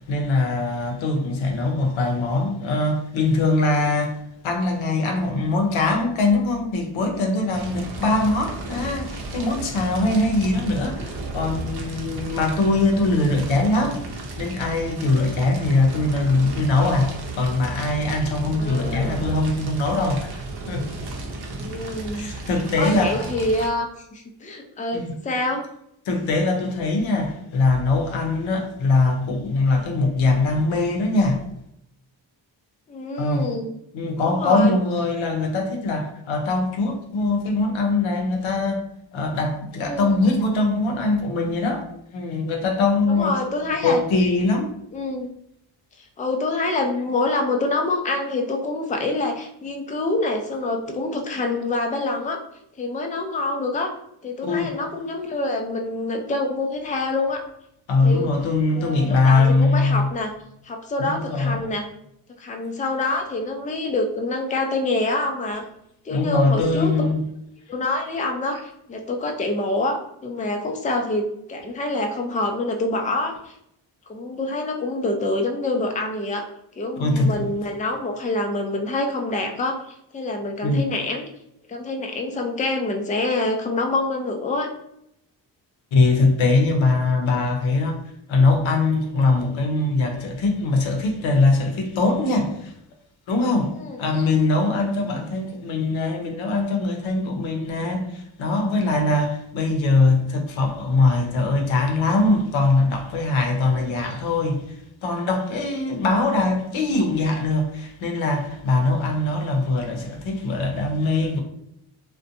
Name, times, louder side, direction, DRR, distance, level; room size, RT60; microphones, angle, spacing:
voice 1, 0.1-4.2 4.4-14.0 14.4-20.4 20.7-20.9 22.1-23.5 24.9-25.2 26.1-31.4 33.2-33.6 33.9-38.8 39.1-41.8 42.1-43.4 43.8-44.7 54.4-54.8 57.9-60.1 61.0-61.7 66.1-67.2 77.0-77.5 80.6-80.8 85.9-88.0 88.3-92.7 93.3-93.7 94.0-104.7 105.0-111.4, left 3 dB, 80° left, 0.6 m, -22 dB
Fire, 7.5-23.7, right 2 dB, 55° right, 0.7 m, -33 dB
voice 2, 18.6-19.2 21.5-22.3 22.8-25.7 32.9-33.7 34.2-34.8 39.8-40.1 43.1-44.0 44.9-45.3 46.0-52.4 52.8-53.9 54.2-57.4 58.0-58.4 58.7-60.3 60.6-61.9 62.4-65.6 66.0-66.9 67.7-73.5 74.1-76.4 76.8-81.3 81.7-84.7 93.8-94.0 103.6-104.0, left 2 dB, 15° left, 0.4 m, -26 dB
2.5 x 2.2 x 2.6 m
cardioid pair, 50°, 46 cm